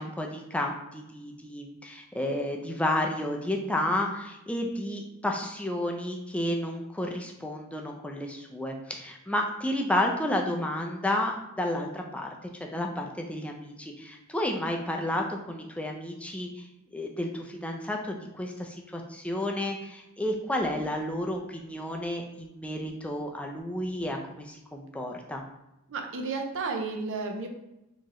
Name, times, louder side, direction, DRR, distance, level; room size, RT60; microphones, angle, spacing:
voice 1, 0.0-25.4, left 1 dB, 5° left, 1 dB, 0.4 m, -31 dB
voice 2, 25.9-27.5, right 4 dB, 60° right, 4 dB, 0.6 m, -32 dB
4.3 x 3.0 x 3.0 m, 0.89 s
head